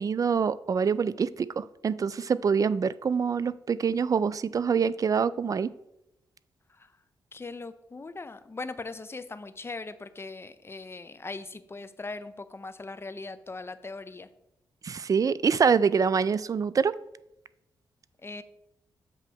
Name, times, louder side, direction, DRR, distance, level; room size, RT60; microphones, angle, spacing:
voice 1, 0.0-5.7 14.8-16.9, right 6 dB, 40° right, 17 dB, 0.3 m, -25 dB
voice 2, 7.3-14.3 18.2-18.4, left 3 dB, 30° left, 12 dB, 0.5 m, -40 dB
7.8 x 3.0 x 5.6 m, 0.85 s
cardioid pair, 55°, 9 cm